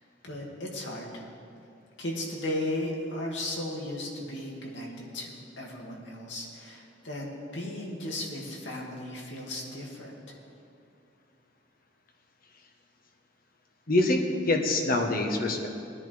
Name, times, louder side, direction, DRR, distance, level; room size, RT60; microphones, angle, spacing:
voice 1, 0.2-1.2 2.0-7.3 7.5-10.1, left 1 dB, 85° left, -2 dB, 2.5 m, -35 dB
voice 2, 13.9-15.7, left 2 dB, 55° left, 3 dB, 1.4 m, -25 dB
20.5 x 10.5 x 3.5 m, 2.6 s
head